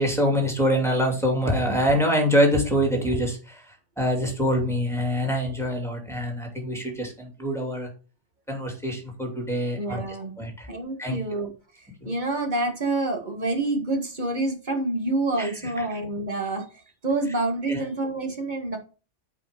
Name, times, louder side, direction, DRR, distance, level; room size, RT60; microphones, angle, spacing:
voice 1, 0.0-3.6 4.0-7.9 8.5-10.7 11.0-11.5 12.0-12.1 15.4-15.9 17.7-17.8, equal, ahead, 1 dB, 2.7 m, -25 dB
voice 2, 9.8-10.3 10.7-11.5 12.0-16.6 17.0-18.8, right 2 dB, 40° right, 3 dB, 1.7 m, -27 dB
8.3 x 5.0 x 5.1 m, 0.36 s
omnidirectional pair, 1.2 m